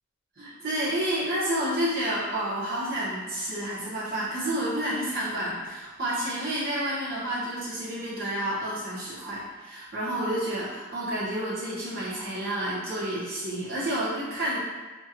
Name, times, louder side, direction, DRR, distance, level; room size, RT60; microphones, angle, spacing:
voice 1, 0.4-14.6, right 1 dB, 55° right, -9 dB, 1.3 m, -30 dB
6.3 x 2.5 x 3.0 m, 1.3 s
head